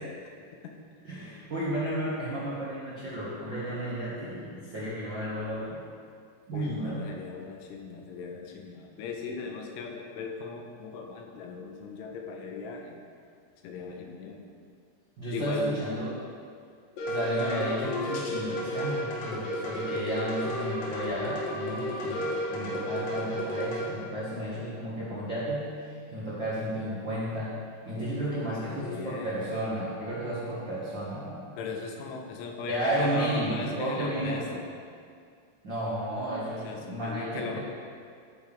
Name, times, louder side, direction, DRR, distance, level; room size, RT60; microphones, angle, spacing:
voice 1, 1.0-5.8 6.5-7.0 15.2-16.1 17.1-27.5 27.8-31.5 32.7-34.4 35.6-37.6, right 1 dB, 75° right, -9 dB, 1.0 m, -32 dB
voice 2, 6.5-13.0 13.6-14.5 15.3-15.8 19.5-19.7 28.0-29.6 31.6-34.7 36.7-37.6, left 4 dB, 85° left, 2 dB, 3.5 m, -38 dB
sound 1, 17.0-23.9, left 1 dB, 55° left, 2.8 m, -32 dB
14.5 x 8.7 x 3.6 m, 2.2 s
omnidirectional pair, 5.4 m